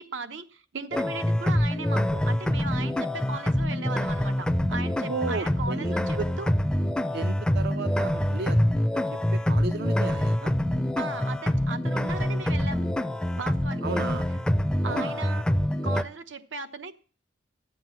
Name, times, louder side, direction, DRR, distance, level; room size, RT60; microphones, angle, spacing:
voice 1, 0.0-6.5 11.0-12.9 13.4-13.9 14.8-15.4 15.8-16.9, right 4 dB, 80° right, 1.0 m, -37 dB
sound 1, 0.9-16.0, left 1 dB, 5° left, 0.5 m, -26 dB
voice 2, 5.0-6.3 7.1-8.6 8.9-9.0 9.3-10.5 13.8-14.3 14.8-15.2, right 4 dB, 60° right, 0.5 m, -34 dB
11.5 x 7.7 x 7.3 m
head